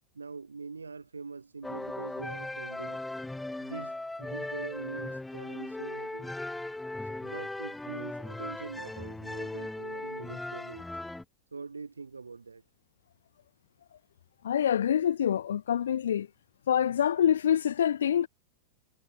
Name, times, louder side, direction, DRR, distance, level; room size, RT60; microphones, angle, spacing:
voice 1, 0.1-3.0 3.6-6.3 7.1-10.9 11.5-12.6, right 4 dB, 75° right, 7.1 m, -43 dB
sound 1, 1.6-11.2, left 2 dB, 5° left, 1.6 m, -38 dB
voice 2, 14.4-16.3 16.7-18.3, left 9 dB, 65° left, 0.5 m, -26 dB
figure-of-eight pair, 90°, 0 cm